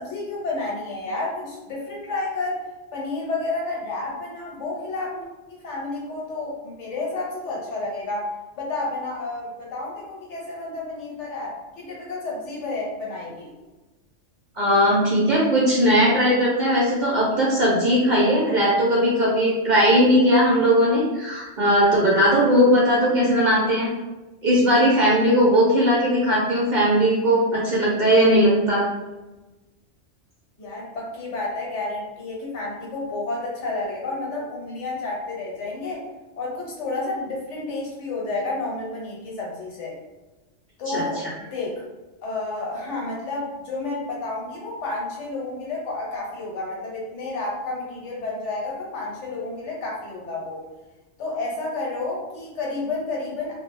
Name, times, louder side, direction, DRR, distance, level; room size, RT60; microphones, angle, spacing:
voice 1, 0.0-2.6 2.9-5.2 5.5-13.5 30.6-36.0 36.4-40.0 40.8-41.8 42.2-50.6 51.2-53.5, left 2 dB, 75° left, -3 dB, 1.1 m, -30 dB
voice 2, 14.6-23.9 24.4-28.8 40.9-41.0, equal, 55° right, -5 dB, 0.5 m, -18 dB
2.1 x 2.0 x 3.1 m, 1.1 s
omnidirectional pair, 1.2 m